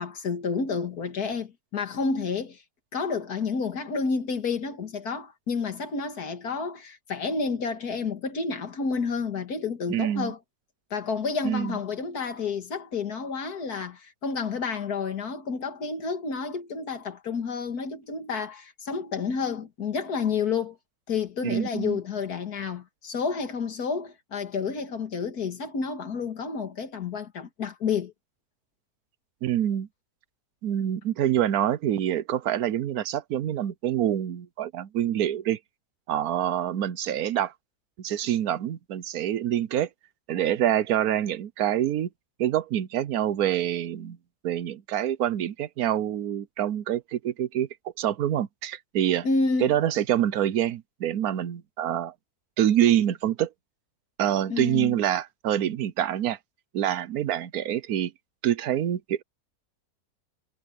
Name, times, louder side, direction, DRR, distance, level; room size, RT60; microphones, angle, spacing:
voice 1, 0.0-2.6 2.9-10.4 10.9-20.8 21.1-28.1 49.2-49.7 54.5-55.0, left 5 dB, 80° left, 2.4 m, -30 dB
voice 2, 9.9-10.3 11.4-11.8 21.4-22.0 29.4-29.9 30.6-35.6 36.1-37.5 38.0-39.9 40.3-42.1 42.4-44.2 44.4-47.7 48.0-49.2 49.6-52.1 52.6-53.5 54.2-56.4 56.7-58.1 58.4-59.2, right 11 dB, 75° right, 1.2 m, -26 dB
omnidirectional pair, 1.6 m